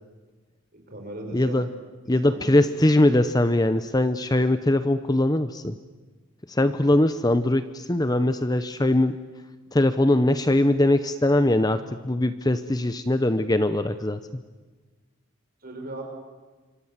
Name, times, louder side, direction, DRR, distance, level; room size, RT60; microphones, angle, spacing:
voice 1, 0.7-1.6 2.0-2.7 15.6-16.0, right 1 dB, 45° right, 2 dB, 5.7 m, -38 dB
voice 2, 1.3-1.7 2.1-5.8 6.5-9.2 9.7-14.2, left 1 dB, 20° left, 11 dB, 0.7 m, -21 dB
27.0 x 25.5 x 7.5 m, 1.3 s
head